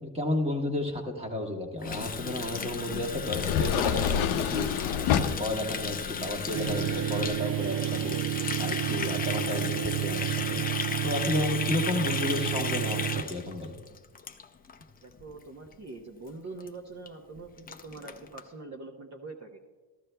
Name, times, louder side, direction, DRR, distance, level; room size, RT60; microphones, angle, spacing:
voice 1, 0.0-4.7 5.1-8.2 8.6-10.6 11.0-13.8, left 1 dB, 10° right, 2 dB, 1.4 m, -32 dB
Water tap faucet, 1.8-14.8 15.1-15.3 15.7-16.0 16.3-16.4 16.6-16.7 17.1-17.2 17.4-18.4, left 6 dB, 20° left, 0.5 m, -35 dB
sound 1, 1.9-7.4, left 8 dB, 70° left, 0.7 m, -30 dB
sound 2, 6.5-13.2, right 13 dB, 55° right, 0.7 m, -31 dB
voice 2, 15.0-19.6, right 3 dB, 35° right, -1 dB, 0.9 m, -44 dB
15.0 x 12.5 x 2.2 m, 1.3 s
cardioid pair, 110°, 50 cm